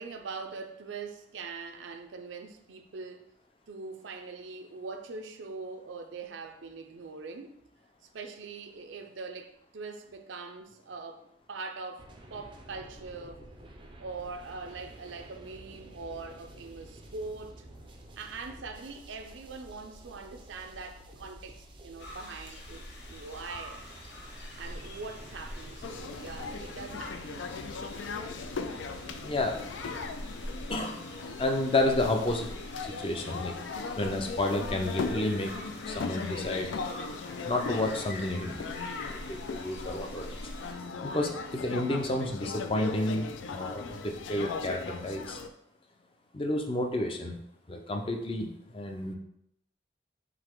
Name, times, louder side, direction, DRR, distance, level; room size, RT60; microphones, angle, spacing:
voice 1, 0.0-3.2 3.7-7.5 8.1-13.5 14.0-17.7 18.2-23.8 24.6-27.5, right 4 dB, 85° right, 0.5 m, -42 dB
sound 1, 12.0-30.1, right 1 dB, 25° right, 0.4 m, -50 dB
sound 2, 22.0-40.7, left 1 dB, 65° left, 0.8 m, -45 dB
sound 3, 25.8-45.5, left 4 dB, 85° left, 0.4 m, -38 dB
voice 2, 29.2-29.6 30.7-31.0 31.4-32.5 32.8-33.5 34.0-35.5 35.9-36.7 37.5-38.6 39.0-40.3 41.0-45.4 46.3-47.4 47.7-49.1, left 1 dB, 30° left, 0.5 m, -30 dB
3.9 x 2.8 x 4.4 m
head